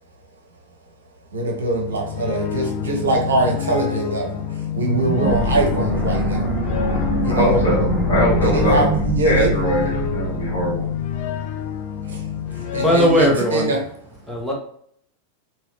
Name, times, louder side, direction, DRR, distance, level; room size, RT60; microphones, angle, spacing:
voice 1, 1.3-4.4 4.7-6.5 7.2-7.6 8.4-8.9 9.1-9.5 12.1-12.3 12.5-13.8, right 2 dB, 65° right, 1 dB, 0.9 m, -22 dB
sound 1, 1.6-13.4, left 9 dB, 45° left, 0.4 m, -28 dB
Intimidating Dogscape Howl, 4.7-11.2, right 6 dB, 50° right, 0.4 m, -26 dB
sound 2, 5.3-11.3, left 4 dB, 25° left, 0.9 m, -26 dB
voice 2, 7.3-8.8 9.2-10.8, equal, 65° left, -3 dB, 1.3 m, -22 dB
voice 3, 12.5-13.7 14.3-14.5, equal, 5° right, -3 dB, 0.9 m, -19 dB
3.0 x 3.0 x 3.1 m, 0.65 s
figure-of-eight pair, 90°, 0 cm